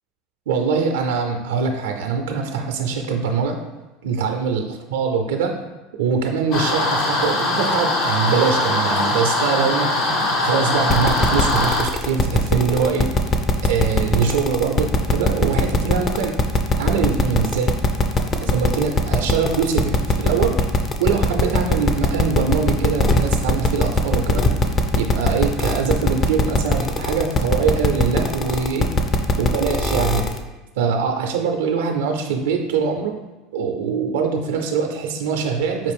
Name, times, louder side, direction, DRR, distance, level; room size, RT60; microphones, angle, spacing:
voice 1, 0.5-3.6 4.0-4.6 4.9-5.6 6.0-13.4 13.6-16.4 16.8-17.7 18.4-20.6 21.0-24.5 25.0-28.9 29.4-30.2 30.7-33.1 33.5-35.9, right 5 dB, 85° right, 4 dB, 0.4 m, -23 dB
sound 1, 6.5-11.8, left 2 dB, 65° left, 0.8 m, -21 dB
sound 2, 10.9-30.4, left 3 dB, 35° left, 0.5 m, -19 dB
5.2 x 2.5 x 3.4 m, 1.1 s
hypercardioid pair, 90°, 0 cm